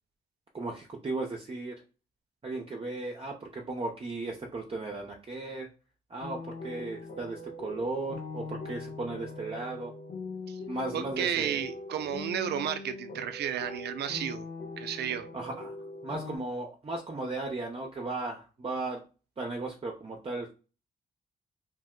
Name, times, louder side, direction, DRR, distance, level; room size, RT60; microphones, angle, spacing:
voice 1, 0.5-1.8 2.4-5.7 6.1-9.9 10.7-11.6 15.3-15.7 16.0-19.0 19.4-20.5, right 2 dB, 30° right, 1 dB, 0.7 m, -36 dB
sound 1, 6.2-16.4, left 2 dB, 75° left, 0.7 m, -41 dB
voice 2, 10.9-14.5 14.8-15.3, right 9 dB, 65° right, 10 dB, 0.4 m, -32 dB
2.6 x 2.1 x 3.7 m, 0.33 s
supercardioid pair, 50°, 18 cm